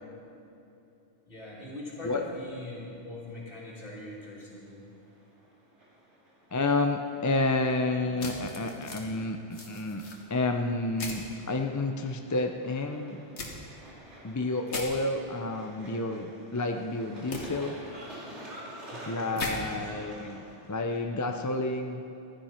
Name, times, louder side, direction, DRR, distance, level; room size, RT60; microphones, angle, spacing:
voice 1, 1.3-4.8 18.9-20.0, left 1 dB, 50° left, -6 dB, 3.3 m, -42 dB
sound 1, 2.3-21.0, right 1 dB, 90° right, 2.9 m, -50 dB
voice 2, 6.5-10.0 10.3-13.2 14.2-17.8 19.1-20.4 20.7-22.0, left 2 dB, 25° left, 4 dB, 0.4 m, -30 dB
sound 2, 8.2-9.0 9.5-10.2 11.0-11.2 13.4-13.5 14.7-14.9 17.3-17.4 19.4-19.5, left 3 dB, 75° left, 1.8 m, -37 dB
15.5 x 12.0 x 4.4 m, 2.8 s
omnidirectional pair, 1.1 m